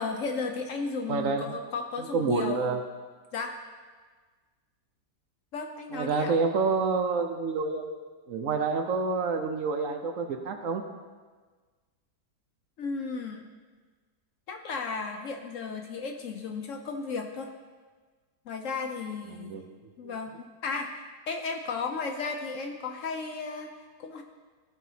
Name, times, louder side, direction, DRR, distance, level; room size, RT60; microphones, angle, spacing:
voice 1, 0.0-2.8 3.3-3.6 5.5-6.4 12.8-13.5 14.5-17.5 18.5-19.6 20.0-24.2, left 4 dB, 65° left, 4 dB, 0.9 m, -34 dB
voice 2, 1.1-1.5 2.1-2.8 5.9-7.9 8.3-10.8 19.4-19.6 20.0-20.1, right 4 dB, 65° right, 5 dB, 0.9 m, -28 dB
15.0 x 5.8 x 2.7 m, 1.4 s
omnidirectional pair, 1.7 m